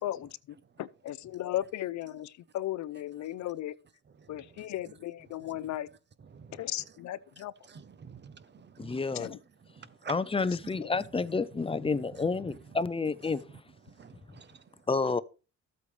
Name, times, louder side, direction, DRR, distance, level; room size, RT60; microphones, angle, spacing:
voice 1, 0.0-3.7 4.3-5.9 6.5-7.5 9.1-9.4 10.8-10.9, left 13 dB, 70° left, 0.6 m, -36 dB
voice 2, 4.1-4.7 5.5-5.6 6.2-6.9 7.4-9.3 9.6-10.2 10.6-11.0 11.8-12.6 13.8-14.8, right 6 dB, 35° right, 0.7 m, -50 dB
voice 3, 8.8-9.4 10.1-13.4 14.9-15.2, left 4 dB, 20° left, 0.6 m, -30 dB
13.0 x 8.3 x 3.2 m
cardioid pair, 90°, 30 cm